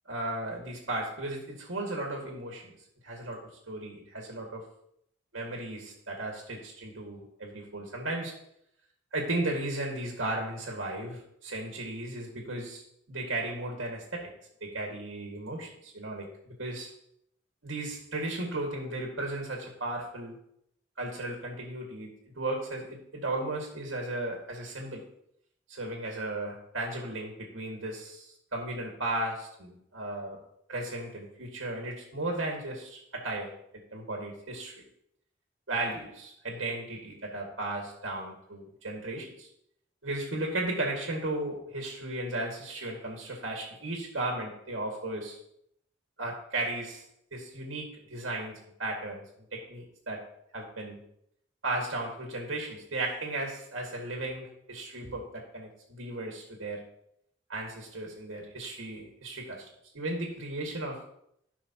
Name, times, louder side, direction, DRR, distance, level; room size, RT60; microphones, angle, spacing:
voice 1, 0.1-2.7 3.0-4.6 5.3-8.4 9.1-12.8 13.1-14.3 14.6-16.9 17.6-20.4 21.0-25.0 25.7-30.4 30.7-34.8 35.7-39.5 40.0-45.4 46.2-47.0 47.3-49.2 49.5-50.3 50.5-51.0 51.6-56.9 57.5-59.7 59.9-61.1, right 2 dB, 90° right, 1 dB, 1.9 m, -35 dB
15.5 x 5.8 x 2.9 m, 0.74 s
head